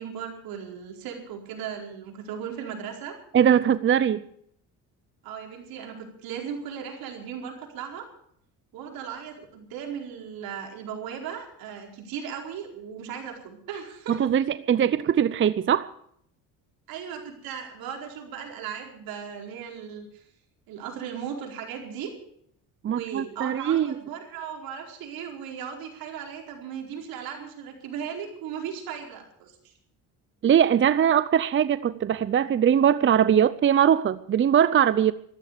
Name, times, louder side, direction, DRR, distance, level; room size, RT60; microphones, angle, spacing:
voice 1, 0.0-3.1 5.2-8.1 8.7-14.2 16.9-20.2 20.7-22.1 22.9-29.7, right 8 dB, 80° right, 1 dB, 4.7 m, -37 dB
voice 2, 3.3-4.2 14.1-15.9 22.8-23.9 30.4-35.1, right 9 dB, 35° right, 15 dB, 0.6 m, -21 dB
14.0 x 14.0 x 6.8 m, 0.68 s
cardioid pair, 100°, 35 cm